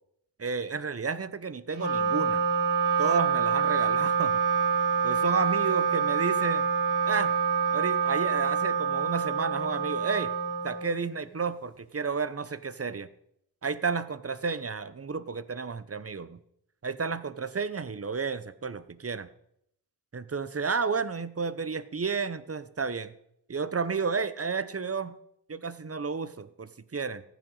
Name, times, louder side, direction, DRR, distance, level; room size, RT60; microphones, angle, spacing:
voice 1, 0.4-2.5 3.0-4.4 5.0-6.7 7.1-7.3 7.7-10.3 10.6-13.1 13.6-16.4 16.8-19.3 20.1-23.1 23.5-25.2 25.5-27.2, right 5 dB, 30° right, 15 dB, 1.1 m, -31 dB
Wind instrument woodwind instrument, 1.7-11.3, right 6 dB, 50° right, 5.6 m, -26 dB
15.0 x 9.4 x 5.6 m, 0.74 s
supercardioid pair, 45°, 47 cm